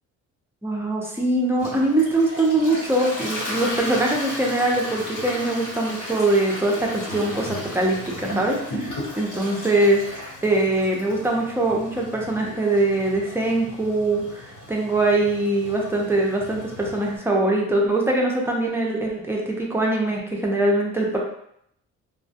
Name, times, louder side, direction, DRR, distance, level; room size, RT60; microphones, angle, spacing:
voice 1, 0.6-21.2, right 2 dB, 10° right, -2 dB, 0.6 m, -22 dB
Toilet flush, 1.6-17.2, left 1 dB, 85° left, 1.0 m, -35 dB
2.2 x 2.1 x 2.7 m, 0.72 s
cardioid pair, 90°, 30 cm